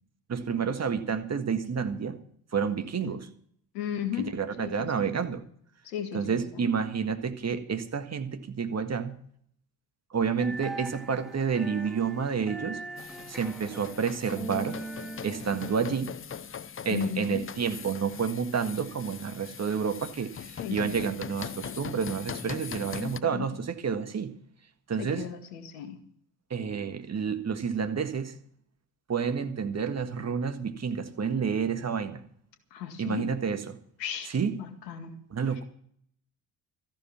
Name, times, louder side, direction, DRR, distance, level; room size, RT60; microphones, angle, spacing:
voice 1, 0.3-2.2 2.5-3.3 4.3-5.4 6.1-9.1 10.1-12.8 13.1-14.8 15.2-16.1 16.9-24.3 24.9-25.2 26.5-28.3 29.1-32.2 33.0-33.8 34.3-34.5 35.3-35.6, right 6 dB, 30° right, 1.7 m, -30 dB
voice 2, 3.7-4.9 5.8-6.7 16.9-17.4 20.6-21.0 23.0-23.5 25.0-26.0 32.7-33.3 34.0-35.1, left 10 dB, 75° left, 2.1 m, -36 dB
sound 1, 10.4-16.0, right 2 dB, ahead, 3.1 m, -41 dB
sound 2, 13.0-23.2, left 7 dB, 25° left, 0.8 m, -41 dB
14.0 x 12.0 x 5.9 m
hypercardioid pair, 55°, 49 cm